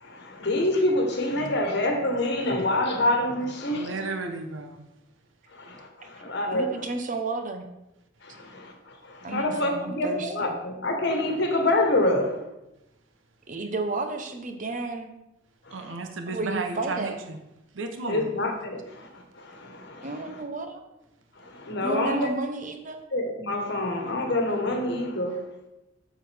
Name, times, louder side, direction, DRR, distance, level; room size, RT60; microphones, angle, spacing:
voice 1, 0.0-4.0 5.6-6.7 8.2-8.7 9.1-12.4 15.7-15.9 18.1-19.1 19.4-20.1 21.5-22.3 23.1-25.4, left 1 dB, 60° left, 3 dB, 1.3 m, -26 dB
voice 2, 3.7-4.8 15.7-17.4 17.7-18.3, right 3 dB, 70° right, 6 dB, 0.8 m, -33 dB
voice 3, 6.4-7.7 9.2-10.5 13.5-15.1 16.3-17.2 20.0-20.8 21.8-23.0, right 3 dB, 40° right, 6 dB, 0.8 m, -32 dB
7.4 x 6.8 x 3.4 m, 0.91 s
head